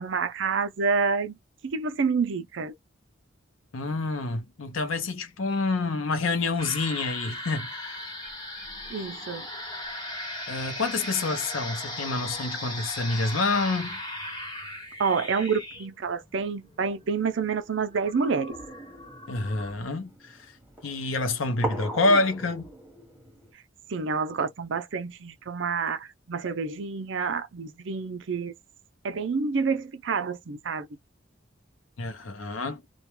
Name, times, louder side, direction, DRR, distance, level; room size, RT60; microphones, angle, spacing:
voice 1, 0.0-1.4 1.6-2.7 8.9-9.5 15.0-18.5 23.9-28.5 29.0-30.9, right 5 dB, 70° right, 0.5 m, -28 dB
voice 2, 3.7-8.1 10.5-14.0 19.3-20.4 20.8-22.7 32.0-32.8, left 3 dB, 90° left, 0.7 m, -27 dB
sound 1, 6.6-19.7, left 1 dB, 20° left, 1.0 m, -38 dB
sound 2, 18.5-23.5, right 1 dB, 10° right, 1.0 m, -39 dB
2.3 x 2.2 x 3.0 m
head